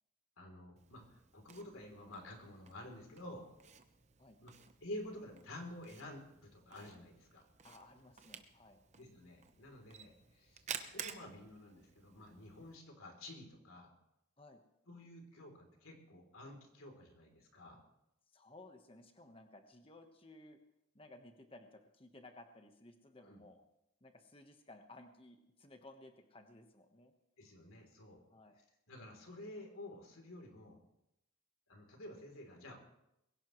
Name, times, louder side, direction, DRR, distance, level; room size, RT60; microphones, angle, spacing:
voice 1, 0.4-3.4 4.4-4.5 4.8-7.4 9.0-13.9 14.9-17.8 23.2-23.4 27.4-28.2 28.9-30.8 31.7-32.8, left 1 dB, 85° left, 3 dB, 3.4 m, -51 dB
Camera, 0.8-12.8, right 7 dB, 35° right, 0.9 m, -53 dB
voice 2, 7.6-8.8 14.4-14.6 18.3-20.6 20.9-23.6 24.0-27.1 28.3-28.6, left 2 dB, 25° left, 5 dB, 1.2 m, -58 dB
21.5 x 17.0 x 3.2 m, 0.85 s
head